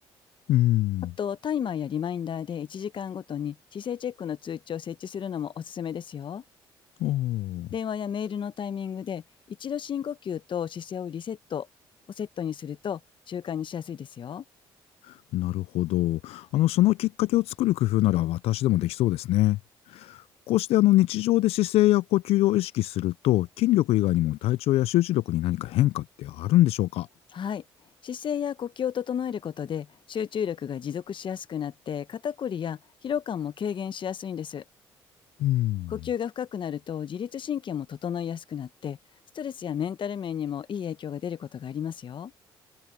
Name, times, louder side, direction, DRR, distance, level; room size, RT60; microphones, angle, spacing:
voice 1, 0.5-1.1 7.0-7.7 15.3-19.6 19.9-20.2 20.5-27.1 35.4-35.9, left 16 dB, 70° left, 0.4 m, -23 dB
voice 2, 1.2-6.4 7.7-9.2 9.5-11.7 12.2-13.0 13.3-14.4 27.3-27.6 28.0-34.6 35.9-39.0 39.3-42.3, left 8 dB, 50° left, 1.0 m, -32 dB
supercardioid pair, 60°, 10 cm